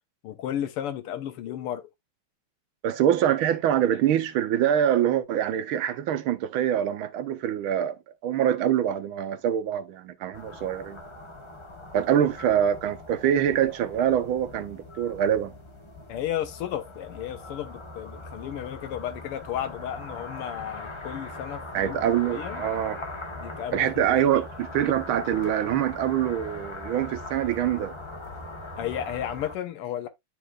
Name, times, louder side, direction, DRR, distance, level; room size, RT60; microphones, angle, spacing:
voice 1, 0.2-1.9 16.1-22.0 22.3-22.6 23.4-24.1 28.8-30.1, left 11 dB, 90° left, 1.9 m, -33 dB
voice 2, 2.8-7.9 8.2-11.0 11.9-15.5 21.7-23.0 23.7-27.9, right 10 dB, 75° right, 1.6 m, -25 dB
sound 1, 10.3-29.5, left 2 dB, 50° left, 0.3 m, -40 dB
11.0 x 4.4 x 2.3 m
omnidirectional pair, 2.4 m